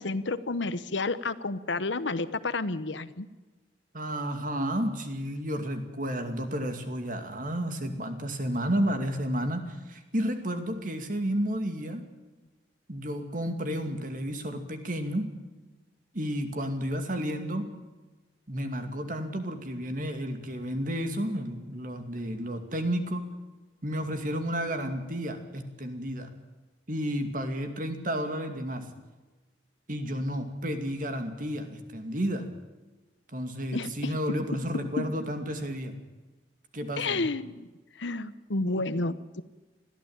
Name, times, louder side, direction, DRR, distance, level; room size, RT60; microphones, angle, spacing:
voice 1, 0.0-3.3 33.7-34.1 35.0-35.1 37.0-37.7 38.0-39.4, left 3 dB, 75° left, 14 dB, 1.0 m, -30 dB
voice 2, 3.9-12.0 12.9-15.3 16.1-17.7 18.5-23.2 23.8-26.3 26.9-28.8 29.9-32.5 33.3-35.9 36.7-37.3, equal, 45° right, 7 dB, 2.5 m, -31 dB
21.5 x 14.5 x 9.0 m, 1.2 s
head